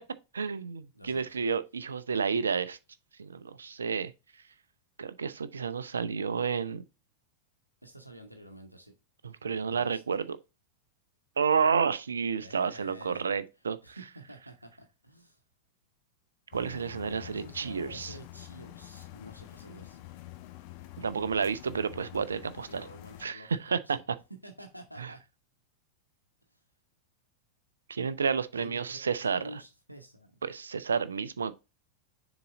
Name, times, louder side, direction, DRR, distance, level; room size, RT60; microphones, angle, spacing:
voice 1, 0.3-2.8 3.2-4.1 5.0-6.8 9.2-10.4 11.4-14.0 16.5-18.1 21.0-22.8 23.2-24.0 25.0-25.1 27.9-29.4 30.4-31.5, right 6 dB, 70° right, 0.5 m, -30 dB
voice 2, 0.9-1.4 7.8-8.9 9.6-10.3 12.3-15.4 17.2-20.0 22.6-24.0 24.4-25.2 26.5-26.6 28.5-30.3, right 1 dB, 90° right, 1.0 m, -49 dB
sound 1, 16.5-23.3, left 16 dB, 45° left, 0.9 m, -47 dB
6.8 x 4.0 x 3.8 m
figure-of-eight pair, 90°, 0 cm